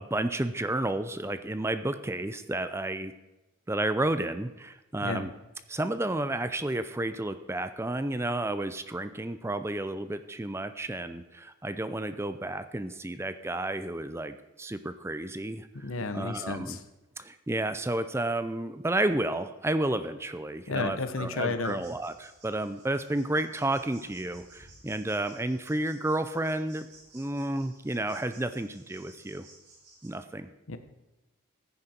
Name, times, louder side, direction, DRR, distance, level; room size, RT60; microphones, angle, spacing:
voice 1, 0.0-3.1 3.7-5.3 5.7-15.7 16.1-16.8 17.2-26.9 27.1-29.5 30.0-30.5, right 1 dB, 10° right, 11 dB, 0.5 m, -31 dB
voice 2, 15.7-16.8 20.7-21.8 30.7-30.8, left 3 dB, 80° left, 10 dB, 1.1 m, -32 dB
sound 1, 21.6-30.1, right 3 dB, 50° right, 4.4 m, -56 dB
15.0 x 9.8 x 4.4 m, 1.0 s
head